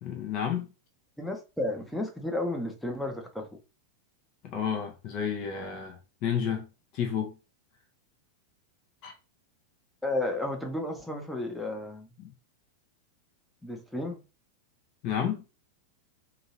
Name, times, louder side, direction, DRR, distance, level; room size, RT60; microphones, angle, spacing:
voice 1, 0.0-0.7 4.4-6.7 6.9-7.3 9.0-9.1 12.2-12.3 15.0-15.4, left 8 dB, 40° left, 0.7 m, -31 dB
voice 2, 1.2-3.5 10.0-12.1 13.6-14.2, left 1 dB, ahead, 0.7 m, -32 dB
2.8 x 2.7 x 2.8 m
figure-of-eight pair, 90°, 0 cm